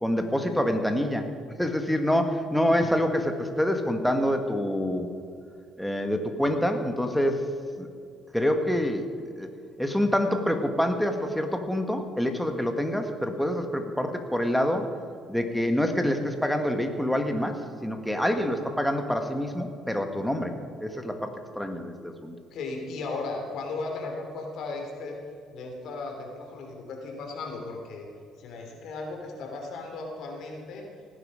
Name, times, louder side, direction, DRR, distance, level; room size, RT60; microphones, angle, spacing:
voice 1, 0.0-1.3 1.6-5.1 5.8-7.4 7.8-7.9 8.3-9.1 9.4-9.5 9.8-14.9 15.3-20.5 20.8-22.3, equal, ahead, 5 dB, 1.6 m, -26 dB
voice 2, 22.5-25.2 25.5-28.1 28.4-30.8, left 3 dB, 70° left, 2 dB, 3.1 m, -36 dB
17.5 x 10.0 x 5.0 m, 2.3 s
cardioid pair, 100°, 0 cm